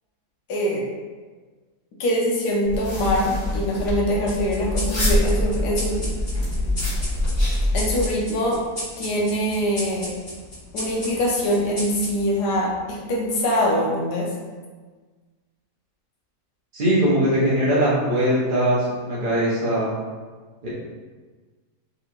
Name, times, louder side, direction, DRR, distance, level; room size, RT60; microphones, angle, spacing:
voice 1, 0.5-0.8 2.0-6.0 7.7-8.6 9.0-10.1 10.7-14.3, equal, 80° left, -3 dB, 1.4 m, -23 dB
sound 1, 2.6-8.1, left 1 dB, 20° left, 0.8 m, -24 dB
sound 2, 4.3-13.2, left 1 dB, 55° left, 0.4 m, -36 dB
voice 2, 16.7-19.9 20.6-20.7, right 1 dB, 65° right, -8 dB, 0.5 m, -21 dB
3.9 x 2.9 x 2.5 m, 1.4 s
omnidirectional pair, 1.8 m